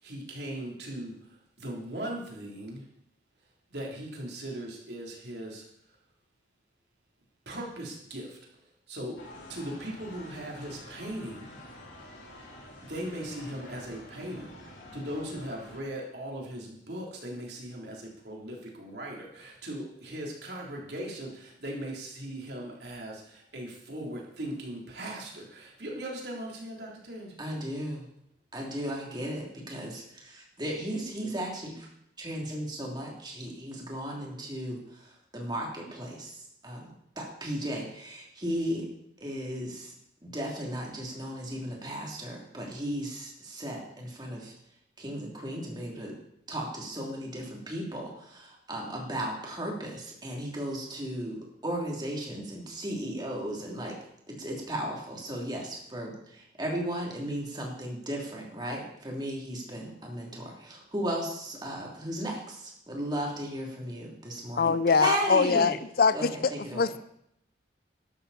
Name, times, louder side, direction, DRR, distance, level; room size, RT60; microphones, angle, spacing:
voice 1, 0.0-2.8 3.7-5.7 7.5-8.4 8.9-9.2 9.5-11.6 12.8-27.4, right 1 dB, 60° right, 3.5 m, -39 dB
sound 1, 9.2-15.8, left 1 dB, 85° left, 4.7 m, -48 dB
voice 2, 27.4-28.0 28.5-31.9 32.2-38.9 39.2-39.9 40.2-44.5 45.0-46.1 46.5-53.9 54.3-65.7 66.1-66.9, right 1 dB, 25° right, 3.1 m, -35 dB
voice 3, 64.6-65.7 66.0-66.3 66.7-67.0, left 5 dB, 55° left, 0.5 m, -22 dB
12.5 x 12.5 x 4.3 m
head